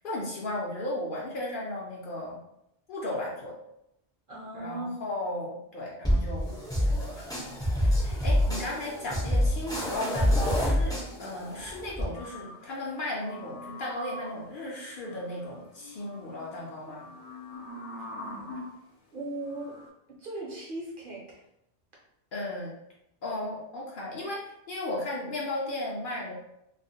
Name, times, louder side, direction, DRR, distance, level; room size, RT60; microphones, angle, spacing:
voice 1, 0.0-2.4 2.9-3.6 4.5-6.5 6.8-17.1 18.4-18.5 22.3-22.7 23.2-26.3, left 1 dB, 60° left, -4 dB, 0.6 m, -35 dB
voice 2, 4.3-5.1 17.9-18.6 19.1-19.8 20.2-21.4, right 2 dB, 55° right, -4 dB, 0.8 m, -38 dB
sound 1, 6.0-12.0, equal, 5° left, 0.5 m, -27 dB
sound 2, 12.1-18.8 19.4-19.9, left 1 dB, 80° left, 0.9 m, -44 dB
2.3 x 2.1 x 2.6 m, 0.83 s
omnidirectional pair, 1.1 m